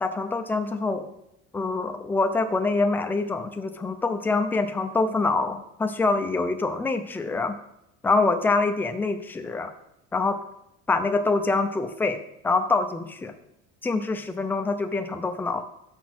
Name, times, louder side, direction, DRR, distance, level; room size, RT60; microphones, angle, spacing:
voice 1, 0.0-1.1 1.5-7.5 8.0-9.7 10.1-10.4 10.9-12.2 12.4-13.3 13.8-15.6, left 3 dB, 5° left, 6 dB, 0.4 m, -25 dB
6.2 x 6.0 x 6.0 m, 0.80 s
cardioid pair, 160°, 30 cm